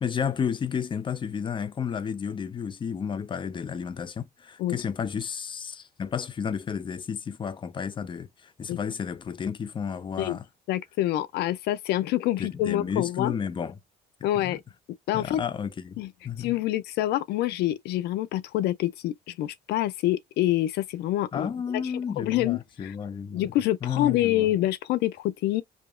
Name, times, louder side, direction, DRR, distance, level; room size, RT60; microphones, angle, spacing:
voice 1, 0.0-10.4 12.4-13.7 14.4-14.6 15.1-16.6 21.3-23.5 23.8-24.5, left 7 dB, 30° left, 0.6 m, -32 dB
voice 2, 10.7-13.3 14.2-14.6 15.1-15.4 16.0-16.1 16.4-21.5 21.7-22.9 23.3-25.6, left 14 dB, 75° left, 0.4 m, -26 dB
4.9 x 2.8 x 2.4 m
cardioid pair, 110°, 17 cm